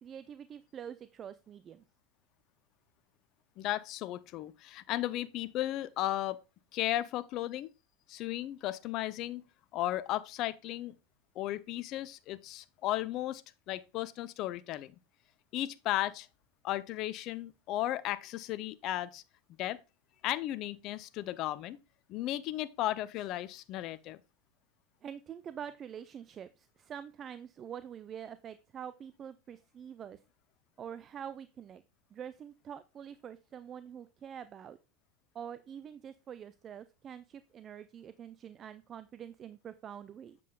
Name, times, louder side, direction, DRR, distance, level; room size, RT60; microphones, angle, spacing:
voice 1, 0.0-1.8 25.0-30.2 30.8-31.8 32.1-34.8 35.3-40.4, right 8 dB, 35° right, 0.4 m, -45 dB
voice 2, 3.6-6.4 6.7-7.7 8.1-9.4 9.7-10.9 11.4-13.4 13.7-14.9 15.5-16.3 16.6-19.2 19.6-19.8 20.2-21.8 22.1-24.2, left 14 dB, 50° left, 0.5 m, -35 dB
7.6 x 7.3 x 2.3 m
hypercardioid pair, 90°, 0 cm